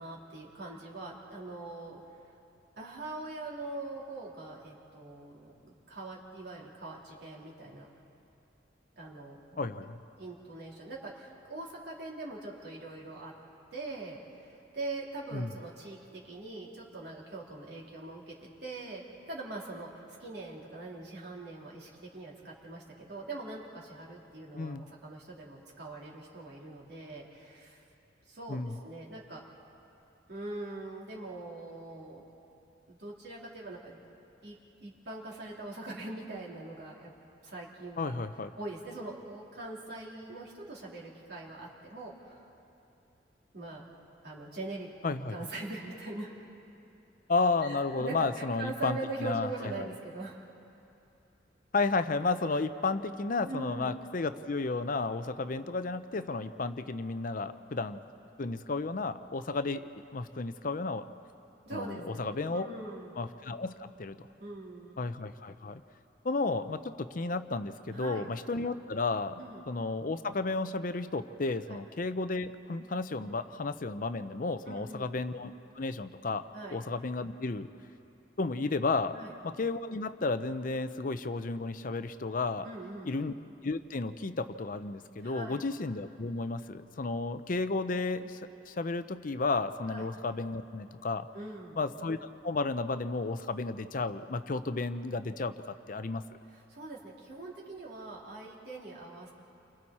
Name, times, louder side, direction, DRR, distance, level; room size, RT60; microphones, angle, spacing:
voice 1, 0.0-2.0 2.8-7.9 9.0-9.7 10.2-13.3 13.7-18.3 18.6-19.9 20.2-27.8 28.3-29.4 30.3-32.2 32.9-34.0 34.4-37.1 37.4-38.1 38.6-42.4 43.5-43.8 44.2-46.3 47.6-50.4 53.4-54.0 61.6-63.2 64.4-65.0 67.9-68.3 69.4-69.6 71.7-71.8 74.6-75.1 76.5-76.8 79.1-79.3 82.6-83.1 85.2-85.6 89.9-90.1 91.3-91.8 96.5-99.3, right 2 dB, 60° right, -4 dB, 3.6 m, -42 dB
voice 2, 9.6-10.0 15.3-15.5 24.5-24.8 28.5-28.8 38.0-38.5 45.0-45.4 47.3-49.5 49.8-49.9 51.7-58.0 58.4-59.8 60.1-61.1 61.7-62.7 63.2-64.3 65.0-65.8 66.2-69.4 69.7-76.4 76.7-77.7 78.4-79.2 79.4-82.7 83.0-83.3 83.6-91.3 91.8-95.5 95.9-96.2, left 3 dB, 45° left, 11 dB, 0.6 m, -33 dB
29.5 x 24.5 x 4.3 m, 2.8 s
head